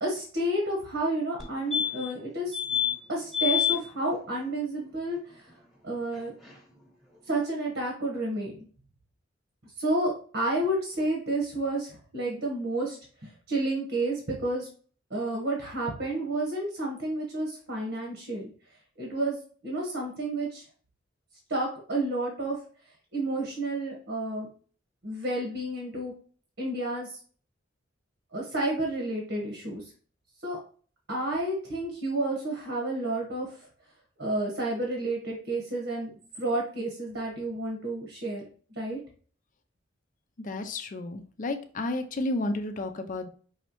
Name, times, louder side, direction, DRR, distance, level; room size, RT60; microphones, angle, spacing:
voice 1, 0.0-2.6 3.1-5.4 5.8-6.3 7.3-8.7 9.8-13.0 13.5-14.7 15.1-18.4 19.0-19.4 19.6-20.6 21.5-22.6 23.1-24.5 25.0-26.1 26.6-27.2 28.3-29.8 30.4-30.6 31.1-33.6 34.2-36.1 36.4-38.4 38.7-39.0, right 1 dB, 75° right, -1 dB, 1.3 m, -30 dB
sound 1, 1.4-1.5 1.7-2.2 2.5-2.9 3.3-3.8 6.2-6.3 6.4-6.5, left 9 dB, ahead, 1.0 m, -26 dB
voice 2, 40.4-43.3, left 2 dB, 45° left, 7 dB, 0.5 m, -32 dB
5.5 x 3.1 x 3.0 m, 0.43 s
head